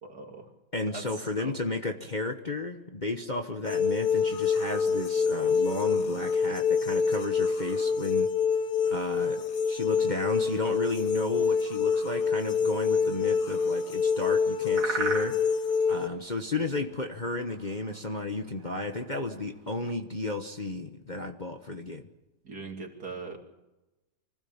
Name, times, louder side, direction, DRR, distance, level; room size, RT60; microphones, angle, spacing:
voice 1, 0.0-0.5 0.9-1.6 22.4-23.4, right 3 dB, 60° right, 2 dB, 3.4 m, -41 dB
voice 2, 0.7-8.3 8.9-15.4 15.9-22.0, left 2 dB, 30° left, 4 dB, 1.2 m, -33 dB
sound 1, 3.6-16.1, left 5 dB, 65° left, 1.7 m, -26 dB
sound 2, 9.8-19.8, right 3 dB, 90° right, 3.5 m, -42 dB
25.5 x 16.0 x 7.3 m, 1.0 s
omnidirectional pair, 1.9 m